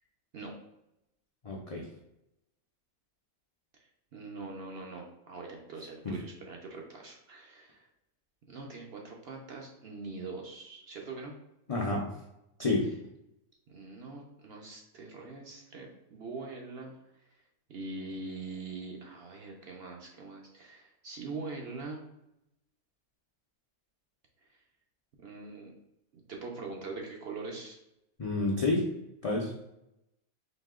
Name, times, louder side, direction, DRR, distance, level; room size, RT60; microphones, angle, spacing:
voice 1, 1.4-1.8 6.0-6.1 11.7-12.1 12.6-12.9 28.2-28.9 29.2-29.5, left 2 dB, 70° left, -3 dB, 0.3 m, -29 dB
voice 2, 4.1-7.9 8.5-11.3 13.7-16.9 17.7-22.0 24.5-24.6 25.2-25.7 26.1-27.8, right 3 dB, 55° right, 1 dB, 0.7 m, -43 dB
4.0 x 2.8 x 3.6 m, 0.86 s
omnidirectional pair, 1.5 m